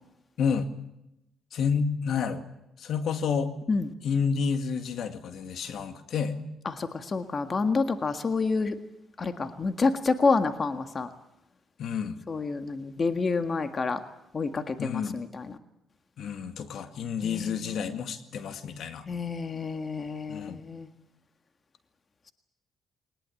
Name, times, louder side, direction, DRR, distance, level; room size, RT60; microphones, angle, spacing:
voice 1, 0.4-0.7 1.5-2.4 2.8-3.5 4.0-6.4 11.8-12.1 14.8-15.2 16.2-19.1 20.3-20.6, left 6 dB, 70° left, 9 dB, 2.1 m, -29 dB
voice 2, 6.6-8.7 9.2-11.1 12.3-14.0 14.3-15.5 17.2-17.9 19.1-20.9, left 4 dB, 35° left, 8 dB, 1.7 m, -28 dB
22.0 x 20.0 x 8.5 m, 0.86 s
cardioid pair, 90°, 0 cm